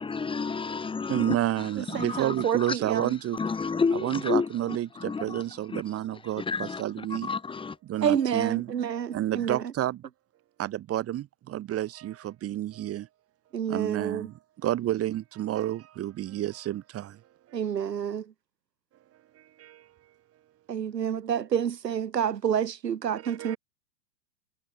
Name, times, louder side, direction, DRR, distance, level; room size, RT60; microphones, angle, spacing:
voice 1, 0.0-3.0 3.3-5.4 5.7-5.8 6.4-7.8, left 5 dB, 10° left, 2.1 m, -31 dB
voice 2, 1.1-3.4 3.9-7.3 7.8-10.0 10.6-13.1 13.7-17.2 17.5-17.6 19.4-19.9 20.8-20.9 23.2-23.6, right 13 dB, 30° right, 4.0 m, -30 dB
voice 3, 1.9-3.1 8.0-9.6 13.5-14.3 17.5-18.2 20.7-23.6, right 8 dB, 90° right, 2.8 m, -28 dB
hypercardioid pair, 125°, 48 cm